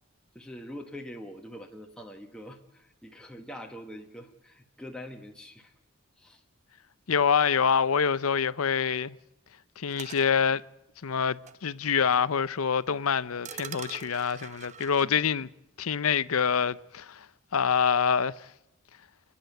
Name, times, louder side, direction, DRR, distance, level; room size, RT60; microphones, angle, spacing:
voice 1, 0.3-5.7 6.2-6.4 15.0-15.1, equal, 5° left, 1.3 m, -44 dB
voice 2, 7.1-9.2 9.8-10.6 11.0-15.5 15.8-17.3 17.5-18.5, left 6 dB, 85° left, 0.7 m, -26 dB
sound 1, 9.9-10.3 11.5-11.6 12.1-12.2 13.5-15.0, right 7 dB, 35° right, 0.8 m, -42 dB
29.5 x 10.5 x 9.2 m
head